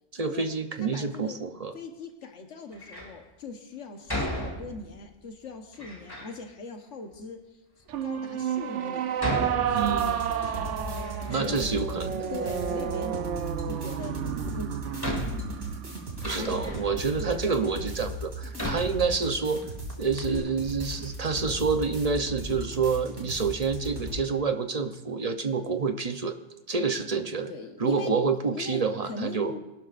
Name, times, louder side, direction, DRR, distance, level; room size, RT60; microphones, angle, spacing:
voice 1, 0.1-1.7 9.7-10.1 11.3-12.3 16.2-19.6 20.0-26.4 26.7-27.5 27.8-29.5, right 5 dB, 40° right, 7 dB, 0.7 m, -28 dB
voice 2, 0.8-1.4 1.7-7.4 8.0-9.1 9.4-10.7 11.3-11.7 12.3-13.3 13.6-15.1 16.4-16.7 17.2-17.7 27.5-28.1 28.4-29.6, left 3 dB, 85° left, 4 dB, 1.5 m, -40 dB
Door, 2.7-3.2 4.1-5.1 5.7-6.4 7.1-7.2 7.9-8.0 9.2-10.3 10.7-11.7 12.0-12.9 14.2-14.3 15.0-17.0 17.6-17.7 18.6-19.6 19.9-20.0 20.2-20.4, left 1 dB, 20° left, 2.1 m, -35 dB
sound 1, 7.9-17.3, right 9 dB, 90° right, 1.0 m, -31 dB
sound 2, 9.8-24.2, equal, 75° right, 2.5 m, -37 dB
22.5 x 12.0 x 2.5 m, 0.97 s
omnidirectional pair, 1.2 m